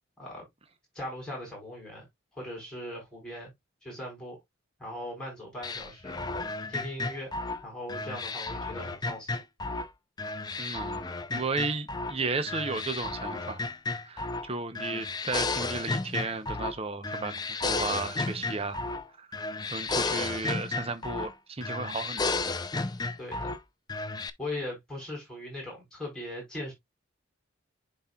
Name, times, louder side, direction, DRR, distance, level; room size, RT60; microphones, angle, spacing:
voice 1, 0.9-2.1 2.3-3.5 3.8-4.4 4.8-6.2 6.7-7.3 7.6-9.4 23.2-23.6 24.4-26.7, left 1 dB, 5° left, 4.8 m, -39 dB
sound 1, 5.6-9.9 10.2-12.2 12.5-14.5 14.7-16.8 17.0-19.1 19.3-21.3 21.6-23.6 23.9-24.3, left 3 dB, 20° left, 0.4 m, -33 dB
voice 2, 10.6-11.0 11.3-13.6 14.1-17.3 17.6-18.8 19.2-19.3 19.7-22.2, right 3 dB, 30° right, 0.7 m, -34 dB
10.5 x 4.2 x 2.3 m
head